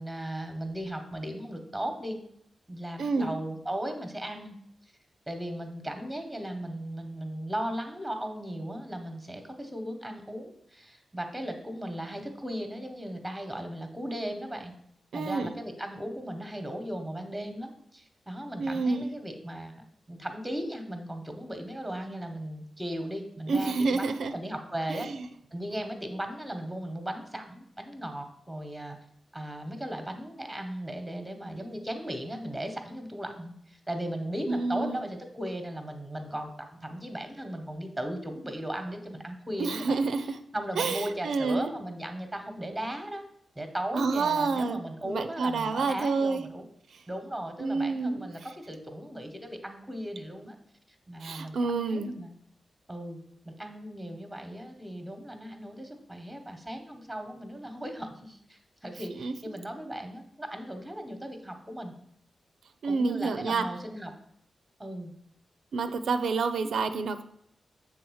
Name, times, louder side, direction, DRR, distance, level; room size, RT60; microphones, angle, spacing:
voice 1, 0.0-2.2 2.7-4.6 5.3-14.7 15.1-25.1 25.5-29.0 29.3-40.0 40.5-43.2 43.5-46.6 47.1-50.6 51.1-52.3 52.9-53.2 53.4-61.9 62.8-64.1 64.8-65.1, right 1 dB, 5° right, 5 dB, 1.0 m, -37 dB
voice 2, 3.0-3.3 15.1-15.5 18.6-19.1 23.5-24.3 24.9-25.3 34.5-35.0 39.6-40.4 40.8-41.7 43.9-46.5 46.9-47.0 47.6-48.3 51.2-52.1 59.1-59.4 62.8-63.7 65.7-67.2, right 4 dB, 85° right, 9 dB, 0.5 m, -28 dB
7.7 x 3.7 x 6.3 m, 0.70 s
wide cardioid pair, 145°, 0 cm